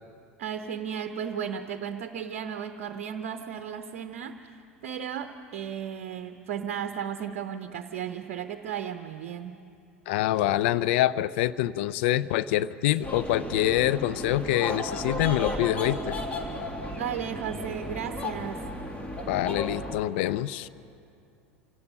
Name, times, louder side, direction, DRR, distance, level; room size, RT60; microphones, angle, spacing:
voice 1, 0.4-9.5 17.0-18.6, right 8 dB, 55° right, 8 dB, 0.8 m, -35 dB
voice 2, 10.1-16.1 19.3-20.7, left 14 dB, 55° left, 17 dB, 0.4 m, -25 dB
sound 1, 13.0-20.0, left 1 dB, 20° left, 2.2 m, -34 dB
27.0 x 17.5 x 5.5 m, 2.6 s
figure-of-eight pair, 80°, 7 cm